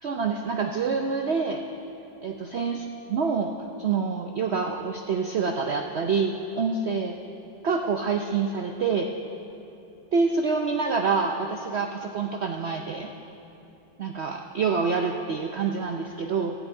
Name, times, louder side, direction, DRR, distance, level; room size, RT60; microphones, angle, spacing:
voice 1, 0.0-1.6 2.2-3.5 3.8-7.2 7.6-9.1 10.1-13.1 14.0-16.5, right 5 dB, 75° right, 4 dB, 0.6 m, -27 dB
14.5 x 7.1 x 8.7 m, 2.8 s
omnidirectional pair, 1.9 m